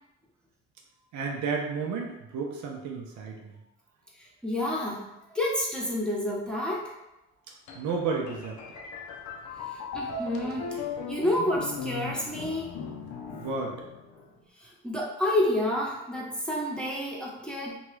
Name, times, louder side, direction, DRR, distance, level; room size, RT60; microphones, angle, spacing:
voice 1, 1.1-3.5 7.8-8.6 13.3-13.8, right 4 dB, 75° right, 0 dB, 0.6 m, -32 dB
voice 2, 4.4-5.1 5.3-6.9 9.9-12.7 14.6-17.8, left 1 dB, 5° left, -5 dB, 0.8 m, -29 dB
sound 1, 7.7-14.4, left 5 dB, 70° left, 0.6 m, -38 dB
2.9 x 2.3 x 3.1 m, 0.93 s
cardioid pair, 90°, 30 cm